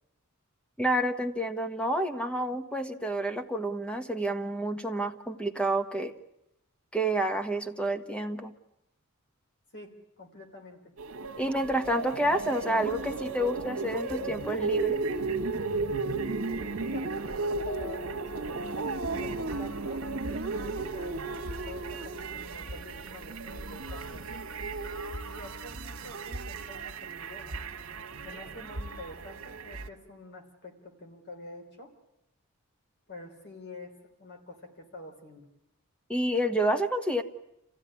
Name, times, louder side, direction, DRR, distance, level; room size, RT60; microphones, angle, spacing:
voice 1, 0.8-6.1 6.9-8.6 11.4-15.0 36.1-37.2, right 1 dB, 5° left, 7 dB, 1.3 m, -29 dB
voice 2, 9.7-10.8 16.7-20.1 20.9-24.4 25.2-27.6 28.2-31.9 33.1-35.5, left 2 dB, 55° left, 4 dB, 3.6 m, -47 dB
sound 1, 11.0-29.9, right 3 dB, 80° right, 1.5 m, -34 dB
sound 2, 16.5-18.6, left 6 dB, 80° left, 2.2 m, -46 dB
28.5 x 16.0 x 9.9 m, 0.88 s
head